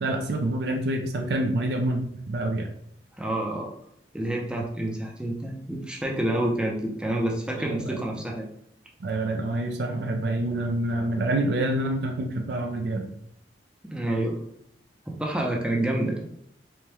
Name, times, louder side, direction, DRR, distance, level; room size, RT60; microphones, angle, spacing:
voice 1, 0.0-2.7 7.6-8.0 9.0-13.1, right 1 dB, 65° right, 3 dB, 0.4 m, -27 dB
voice 2, 3.2-3.7 4.1-8.5 13.8-14.4 15.1-16.2, right 1 dB, 5° right, -1 dB, 0.6 m, -28 dB
4.5 x 2.2 x 3.2 m, 0.71 s
head